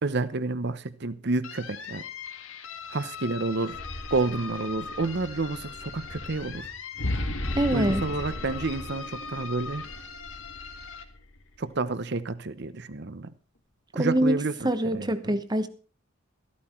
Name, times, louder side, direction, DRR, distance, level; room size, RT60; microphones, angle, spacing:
voice 1, 0.0-2.0 2.9-3.8 4.1-6.7 7.7-9.8 11.6-13.3 13.9-15.3, right 3 dB, 55° right, 14 dB, 0.9 m, -30 dB
sound 1, 1.4-11.0, left 6 dB, 90° left, 1.8 m, -41 dB
sound 2, 3.6-11.7, left 1 dB, 65° left, 1.9 m, -37 dB
voice 2, 7.6-8.0 14.0-14.4 14.6-15.7, right 1 dB, 20° right, 11 dB, 1.0 m, -24 dB
13.5 x 13.0 x 4.5 m, 0.39 s
head